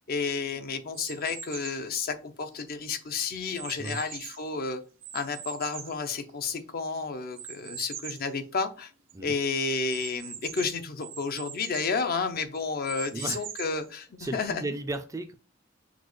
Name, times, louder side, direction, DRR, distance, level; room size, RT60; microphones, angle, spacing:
voice 1, 0.1-4.8 5.1-8.9 9.2-14.6, left 4 dB, 50° left, 9 dB, 0.5 m, -31 dB
sound 1, 0.9-1.9 2.5-4.5 5.0-6.7 7.3-8.3 8.8-8.9 9.1-9.2 9.9-12.0 12.5-13.9, right 9 dB, 65° right, 0.7 m, -42 dB
voice 2, 13.1-13.5 14.2-15.3, right 2 dB, 15° right, 7 dB, 0.3 m, -35 dB
5.9 x 2.3 x 3.1 m, 0.35 s
head